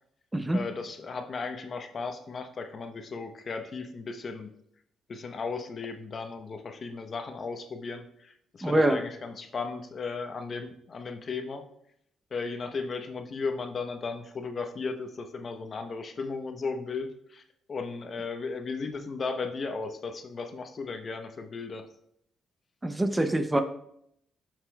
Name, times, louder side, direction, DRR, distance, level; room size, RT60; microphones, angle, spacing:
voice 1, 0.5-4.5 5.1-11.6 12.3-17.4 17.7-21.9, left 4 dB, 45° left, 6 dB, 0.8 m, -36 dB
voice 2, 8.6-9.0 22.8-23.6, right 1 dB, 15° right, 8 dB, 0.5 m, -24 dB
11.5 x 5.9 x 2.3 m, 0.73 s
cardioid pair, 90°, 0 cm